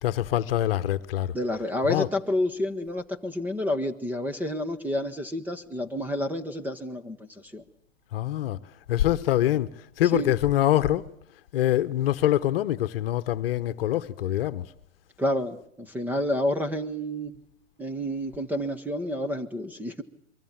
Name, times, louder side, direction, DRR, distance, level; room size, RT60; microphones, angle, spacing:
voice 1, 0.0-1.3 1.9-2.1 8.1-8.6 8.9-9.7 10.0-11.1 11.5-14.7, left 13 dB, 45° left, 1.2 m, -24 dB
voice 2, 1.3-7.2 7.4-7.6 10.1-10.3 15.2-17.4 17.8-20.0, left 1 dB, 5° right, 1.0 m, -29 dB
23.5 x 23.5 x 7.3 m
hypercardioid pair, 130°, 39 cm